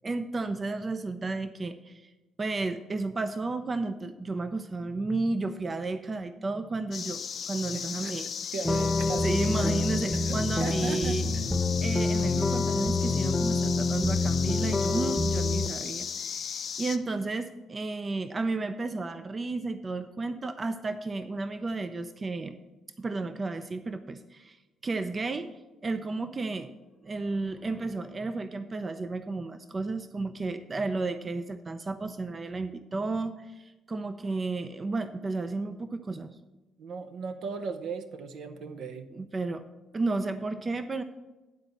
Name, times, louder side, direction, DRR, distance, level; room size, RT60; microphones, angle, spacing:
voice 1, 0.0-2.1 2.4-8.5 9.1-11.3 11.8-22.6 23.0-24.6 24.8-25.5 25.8-26.7 27.0-36.3 39.1-39.6 39.9-41.0, right 3 dB, 35° right, 10 dB, 0.5 m, -32 dB
sound 1, 6.9-17.0, left 7 dB, 55° left, 0.5 m, -36 dB
voice 2, 7.7-8.1 8.5-9.3 9.6-9.7 10.1-11.2 36.8-39.1, right 5 dB, 70° right, 7 dB, 0.7 m, -37 dB
sound 2, 8.6-15.7, left 3 dB, 15° left, 0.9 m, -27 dB
10.5 x 4.0 x 6.9 m, 1.1 s
supercardioid pair, 60°, 0 cm